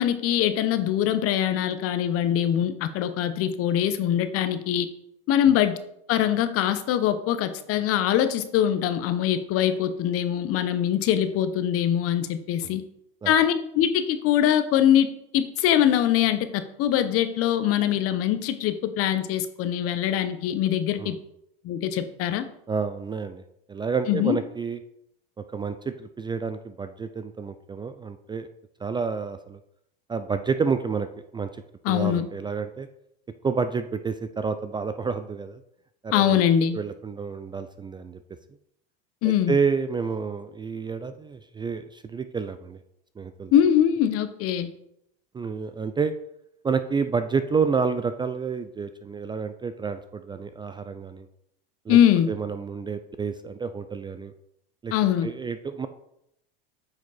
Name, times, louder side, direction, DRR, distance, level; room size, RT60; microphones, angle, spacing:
voice 1, 0.0-4.9 5.3-5.8 6.1-12.8 13.3-15.1 15.3-21.2 21.6-22.4 24.1-24.4 31.8-32.3 36.1-36.8 39.2-39.5 43.5-44.7 51.9-52.3 54.9-55.3, left 10 dB, 50° left, 11 dB, 0.9 m, -23 dB
voice 2, 22.7-23.4 23.7-24.8 25.4-28.5 28.8-29.6 30.1-31.1 31.3-32.9 33.4-35.6 36.0-36.4 36.7-38.2 39.2-42.8 43.2-43.5 45.3-46.1 46.6-51.3 51.9-52.0 52.3-54.3 54.8-54.9 55.2-55.9, right 5 dB, 15° right, 10 dB, 0.4 m, -29 dB
8.6 x 5.0 x 4.1 m, 0.78 s
supercardioid pair, 105°, 29 cm